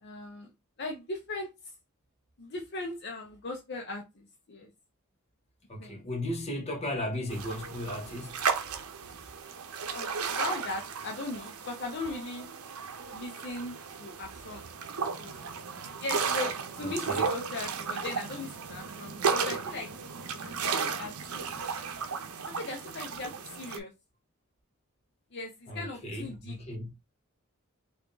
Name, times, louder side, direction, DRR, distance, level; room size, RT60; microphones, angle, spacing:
voice 1, 0.0-0.5 0.8-1.5 2.4-4.7 5.8-6.0 9.9-12.5 13.1-14.7 15.2-15.5 16.0-19.9 20.4-21.6 22.5-23.9 25.3-26.6, left 2 dB, 50° left, 0.7 m, -39 dB
voice 2, 5.7-8.4 14.5-14.6 16.8-17.2 25.7-26.9, left 1 dB, 30° left, 1.0 m, -36 dB
sound 1, 7.3-23.8, right 5 dB, 85° right, 0.6 m, -34 dB
3.4 x 2.6 x 3.8 m
head